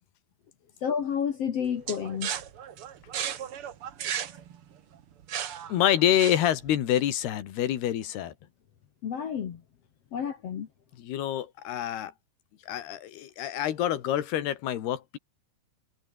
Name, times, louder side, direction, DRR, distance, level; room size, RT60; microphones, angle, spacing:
voice 1, 0.8-2.3 9.0-9.6 10.1-10.7, left 7 dB, 55° left, 1.9 m, -30 dB
sound 1, 1.9-6.7, right 9 dB, 60° right, 1.5 m, -35 dB
voice 2, 5.7-8.3 11.0-12.1 12.7-15.2, left 11 dB, 75° left, 4.0 m, -27 dB
omnidirectional pair, 4.7 m